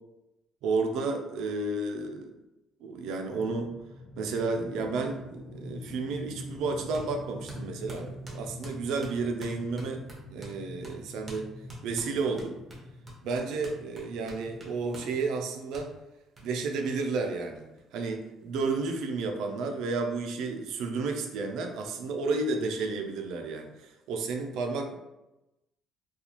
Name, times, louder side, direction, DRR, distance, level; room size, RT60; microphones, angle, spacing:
voice 1, 0.6-2.4 2.8-3.8 4.2-11.5 11.8-12.6 13.2-15.9 16.4-17.7 17.9-25.0, right 3 dB, 75° right, 4 dB, 0.4 m, -32 dB
sound 1, 3.3-15.5, equal, 55° left, 1.1 m, -45 dB
sound 2, 6.9-7.1 7.5-10.6 10.8-11.0 11.3-11.4 11.7-15.1 15.7-15.9 16.4-16.5 16.9-17.0 17.2-17.3 17.6-18.3, right 1 dB, 25° right, 0.8 m, -45 dB
2.5 x 2.3 x 2.9 m, 0.96 s
cardioid pair, 100°, 0 cm